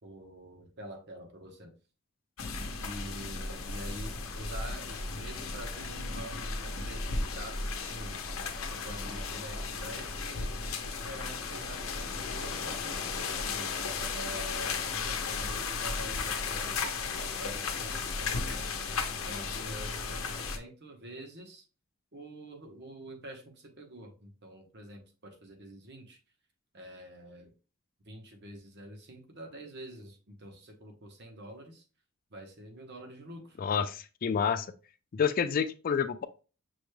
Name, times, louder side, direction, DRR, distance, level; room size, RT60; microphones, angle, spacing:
voice 1, 0.0-1.7 2.8-8.2 8.6-10.5 10.8-13.7 14.1-16.8 17.2-21.6 22.1-26.2 26.7-27.5 28.0-31.8 32.3-33.6, right 1 dB, 55° right, 3 dB, 1.0 m, -46 dB
sound 1, 2.4-20.6, left 4 dB, 85° left, 0.7 m, -35 dB
voice 2, 33.6-34.7 35.1-36.3, left 6 dB, 45° left, 11 dB, 0.3 m, -29 dB
6.1 x 3.2 x 2.2 m, 0.33 s
head